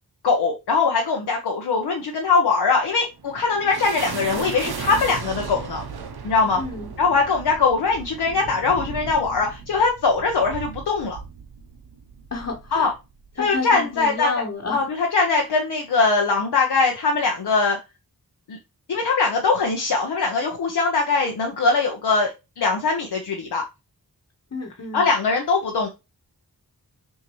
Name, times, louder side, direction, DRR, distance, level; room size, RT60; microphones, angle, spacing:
voice 1, 0.2-5.8 6.2-6.6 7.0-11.2 12.7-12.9 13.4-14.3 14.7-17.8 18.5-18.6 18.9-22.3 22.6-23.6 24.9-25.9, left 4 dB, 80° left, 1 dB, 0.8 m, -21 dB
sound 1, 2.8-13.6, right 5 dB, 75° right, 0.8 m, -36 dB
voice 2, 6.6-6.9 12.3-12.9 13.4-14.9 24.5-25.1, left 3 dB, 40° left, -1 dB, 1.2 m, -30 dB
6.2 x 2.7 x 3.0 m, 0.26 s
cardioid pair, 60°, 38 cm